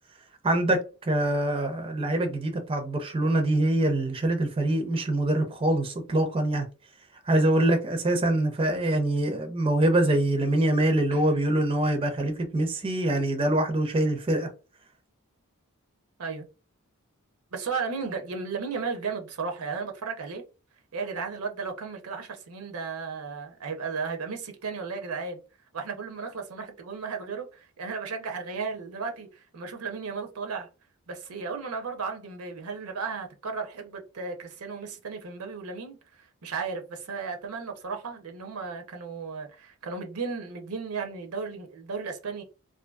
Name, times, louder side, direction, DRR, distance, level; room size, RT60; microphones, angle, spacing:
voice 1, 0.4-6.7 7.3-14.5, right 1 dB, 25° right, 0.4 m, -24 dB
voice 2, 17.5-20.4 20.9-25.4 25.7-30.7 31.1-42.4, right 5 dB, 75° right, 0.6 m, -35 dB
2.6 x 2.5 x 2.2 m
head